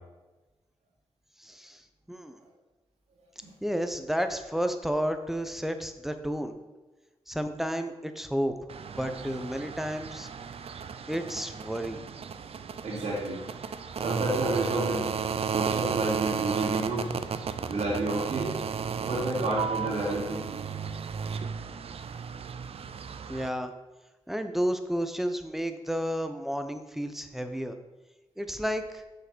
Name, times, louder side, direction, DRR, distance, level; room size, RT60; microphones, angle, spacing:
voice 1, 1.4-1.8 2.1-2.4 3.6-6.5 7.3-8.6 8.9-10.3 11.1-12.0 23.3-23.7 24.3-27.8 28.4-29.0, equal, 5° right, 8 dB, 0.9 m, -31 dB
sound 1, 8.7-23.5, right 6 dB, 65° right, 0.6 m, -34 dB
voice 2, 12.8-13.4 13.9-15.1 15.5-17.1 17.7-18.5 19.0-20.5, right 2 dB, 85° right, -5 dB, 3.2 m, -30 dB
7.6 x 6.6 x 6.2 m, 1.1 s
cardioid pair, 85°, 11 cm